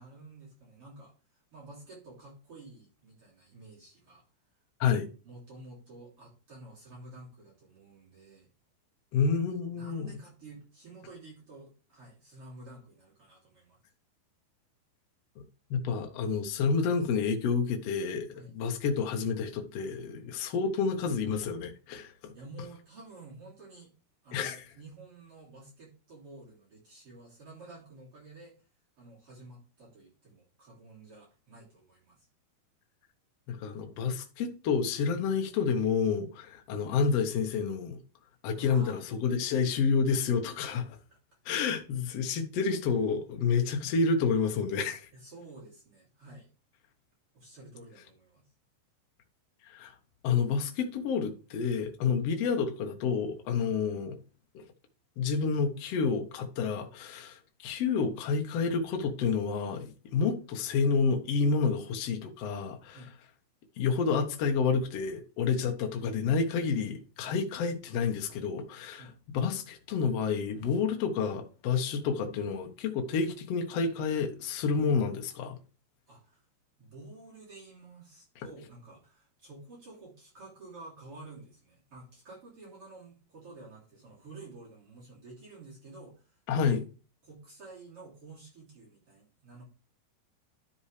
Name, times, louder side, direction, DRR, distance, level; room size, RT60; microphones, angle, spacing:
voice 1, 0.0-4.2 5.2-8.5 9.7-13.8 18.3-18.6 22.3-23.9 24.2-28.6 29.0-32.3 38.5-39.0 40.4-40.6 45.1-46.5 47.3-48.5 53.6-53.7 62.9-63.1 67.2-67.4 69.0-69.2 76.1-76.5 76.8-86.7 87.2-89.6, right 2 dB, 35° right, 3.8 m, -51 dB
voice 2, 9.1-10.1 15.4-15.5 15.7-22.3 24.3-24.6 33.5-38.0 38.4-40.8 41.4-45.1 49.7-49.9 50.2-54.1 54.5-54.6 55.2-63.0 63.8-69.0 69.3-75.6 78.4-78.5 86.5-86.8, left 5 dB, 75° left, 1.4 m, -29 dB
12.0 x 5.6 x 3.3 m
omnidirectional pair, 4.7 m